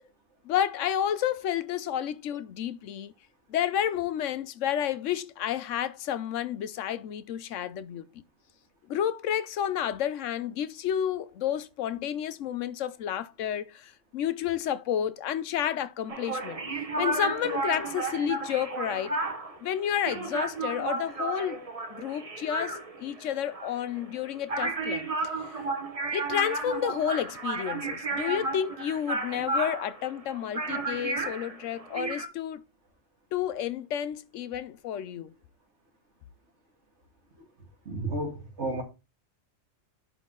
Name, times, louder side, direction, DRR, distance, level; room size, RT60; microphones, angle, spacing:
voice 1, 0.4-3.1 3.5-8.1 8.9-16.6 17.0-19.1 19.6-21.6 21.9-25.1 25.4-25.5 26.1-32.6 33.3-35.3, left 10 dB, 90° left, 1.0 m, -31 dB
sound 1, 16.1-32.3, right 3 dB, 30° right, 1.1 m, -33 dB
voice 2, 37.9-38.8, right 2 dB, 70° right, 2.3 m, -32 dB
10.5 x 3.7 x 3.8 m
omnidirectional pair, 1.2 m